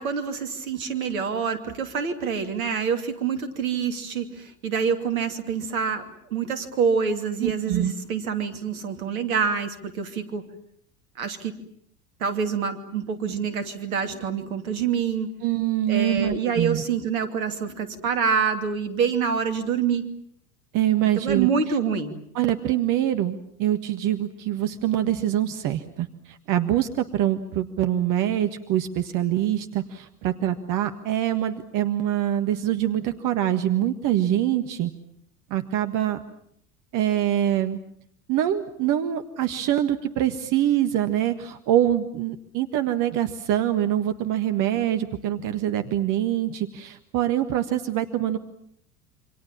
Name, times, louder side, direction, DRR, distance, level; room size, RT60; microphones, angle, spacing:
voice 1, 0.0-10.4 11.2-11.5 12.2-15.3 15.9-20.1 21.2-22.2, right 6 dB, 70° right, 7 dB, 2.8 m, -26 dB
voice 2, 7.4-7.9 15.4-16.8 20.7-21.5 22.4-34.9 35.5-36.2 36.9-37.8 38.3-48.4, right 12 dB, 45° right, 8 dB, 1.6 m, -24 dB
28.0 x 26.0 x 7.3 m, 0.67 s
figure-of-eight pair, 70°, 44 cm